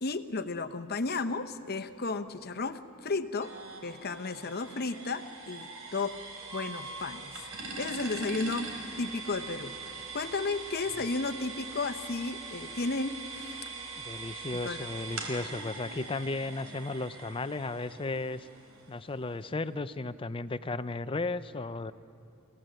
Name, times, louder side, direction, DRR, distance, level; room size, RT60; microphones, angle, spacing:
voice 1, 0.0-3.5 3.8-6.2 6.5-7.3 7.6-8.7 9.0-13.8 14.5-14.8, left 3 dB, 45° left, 10 dB, 0.9 m, -34 dB
sound 1, 3.4-19.1, right 3 dB, 75° right, 4.1 m, -42 dB
voice 2, 14.0-18.5 18.9-21.9, left 3 dB, 25° left, 14 dB, 0.5 m, -35 dB
29.5 x 16.5 x 7.8 m, 2.5 s
head